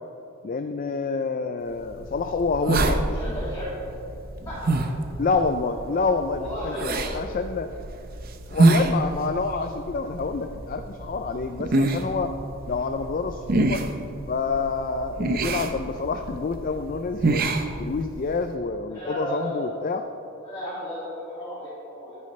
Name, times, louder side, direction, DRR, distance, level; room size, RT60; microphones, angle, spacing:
voice 1, 0.4-3.2 5.2-7.7 8.5-12.3 12.7-13.8 14.3-17.4 17.8-20.0, left 4 dB, 40° left, 7 dB, 0.4 m, -27 dB
sound 1, 1.8-18.4, right 2 dB, 45° right, 0.6 m, -27 dB
voice 2, 3.0-3.8 4.5-4.7 6.4-7.3 18.9-19.8 20.4-22.1, equal, 15° left, -12 dB, 2.4 m, -34 dB
13.5 x 9.4 x 3.2 m, 2.8 s
head